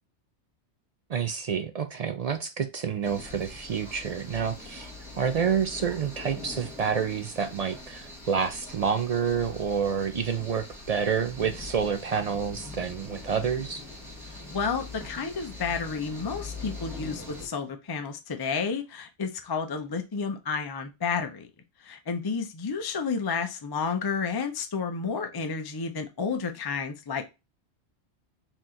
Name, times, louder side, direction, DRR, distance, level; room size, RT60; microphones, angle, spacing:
voice 1, 1.1-13.8, right 7 dB, 65° right, 0.3 m, -28 dB
sound 1, 3.0-17.5, left 2 dB, ahead, 1.3 m, -42 dB
voice 2, 14.3-21.5 21.8-27.2, left 5 dB, 30° left, 0.4 m, -31 dB
4.2 x 3.0 x 3.7 m
omnidirectional pair, 1.2 m